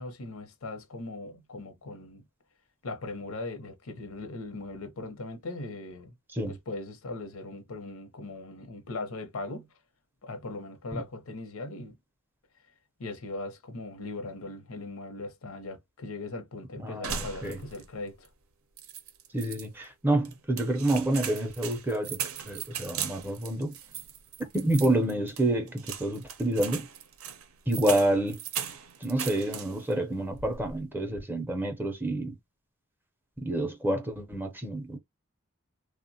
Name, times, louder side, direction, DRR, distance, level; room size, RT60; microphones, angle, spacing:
voice 1, 0.0-2.2 2.8-6.1 6.5-9.7 10.2-11.9 13.0-18.3, left 2 dB, 85° left, 0.7 m, -39 dB
voice 2, 16.8-17.6 19.3-22.2 22.4-23.8 24.5-26.9 27.7-28.4 29.0-32.4 33.4-35.0, right 1 dB, 10° right, 0.5 m, -28 dB
sound 1, 17.0-17.9 18.2-18.3 18.8-19.7 20.2-29.9 30.3-30.8, right 8 dB, 85° right, 0.6 m, -38 dB
3.2 x 2.1 x 2.6 m
head